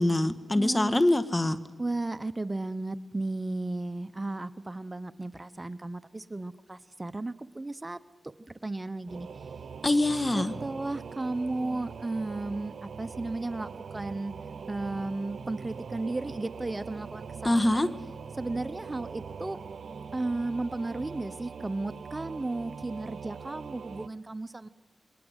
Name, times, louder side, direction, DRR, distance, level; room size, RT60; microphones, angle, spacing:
voice 1, 0.0-1.6 9.8-10.5 17.4-17.9, left 1 dB, 30° left, 12 dB, 1.7 m, -24 dB
voice 2, 0.5-1.1 1.8-9.3 10.1-14.3 14.7-17.9 18.4-19.6 20.1-24.7, right 2 dB, 30° right, 14 dB, 1.0 m, -34 dB
Singing / Musical instrument, 9.1-24.1, right 6 dB, 90° right, 0.8 m, -42 dB
28.5 x 21.5 x 8.3 m, 1.2 s
cardioid pair, 45°, 0 cm